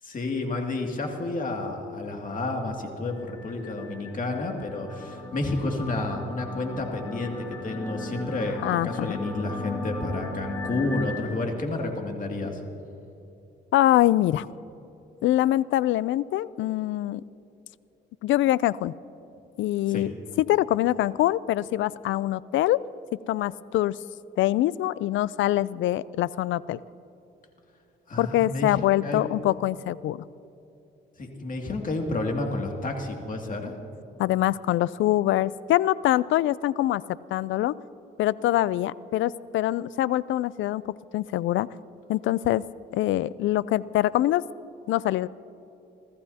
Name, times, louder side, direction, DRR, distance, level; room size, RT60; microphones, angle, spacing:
voice 1, 0.0-12.6 19.9-20.1 28.1-29.2 31.2-33.7, left 2 dB, 40° left, 2 dB, 2.4 m, -30 dB
sound 1, 3.2-11.1, left 2 dB, 15° left, 3.2 m, -38 dB
voice 2, 8.6-9.1 13.7-14.5 15.2-17.2 18.2-18.9 19.6-20.1 20.4-22.8 23.3-24.0 24.4-26.8 28.2-30.2 34.2-37.0 37.3-37.7 38.2-41.7 42.1-42.6 42.9-44.4 44.9-45.3, left 14 dB, 75° left, 19 dB, 0.4 m, -24 dB
28.5 x 14.5 x 2.8 m, 2.9 s
cardioid pair, 90°, 20 cm